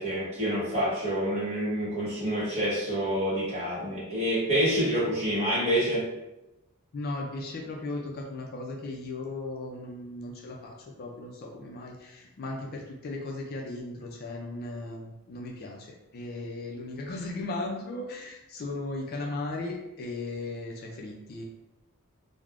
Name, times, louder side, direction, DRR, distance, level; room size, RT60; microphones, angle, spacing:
voice 1, 0.0-6.0, equal, 30° right, -8 dB, 1.2 m, -27 dB
voice 2, 6.9-21.4, left 2 dB, 45° left, 0 dB, 0.3 m, -37 dB
3.3 x 2.0 x 2.4 m, 0.94 s
head